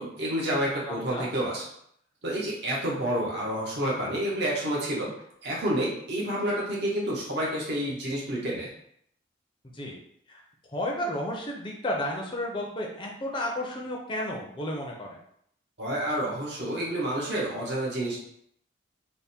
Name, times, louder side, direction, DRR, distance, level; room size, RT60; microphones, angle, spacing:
voice 1, 0.0-1.7 2.2-5.1 5.4-8.7 15.8-18.2, right 1 dB, 55° right, -4 dB, 1.0 m, -29 dB
voice 2, 0.9-1.3 9.6-10.0 10.3-10.4 10.7-15.2, left 1 dB, 25° left, -1 dB, 0.5 m, -32 dB
3.4 x 2.1 x 4.2 m, 0.69 s
head